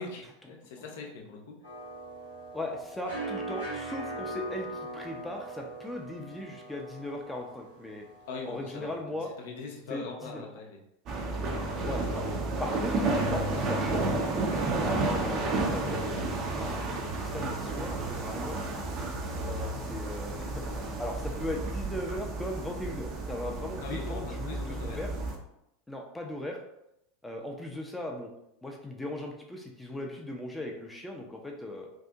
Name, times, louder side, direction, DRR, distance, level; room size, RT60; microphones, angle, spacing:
voice 1, 0.0-1.6 8.3-10.8 18.9-19.1 23.8-25.0, left 3 dB, 60° left, 1 dB, 0.6 m, -42 dB
sound 1, 1.6-9.0, right 1 dB, 75° right, 1.3 m, -41 dB
voice 2, 2.5-8.0 8.5-9.3 9.9-10.5 11.8-12.3 12.6-14.3 14.8-18.9 19.4-25.1 25.9-26.6 27.2-28.3 28.6-31.9, left 1 dB, 10° left, 1 dB, 0.5 m, -38 dB
sound 2, 11.1-25.3, right 2 dB, 40° right, 0.6 m, -31 dB
2.7 x 2.4 x 2.3 m, 0.81 s
figure-of-eight pair, 80°, 0 cm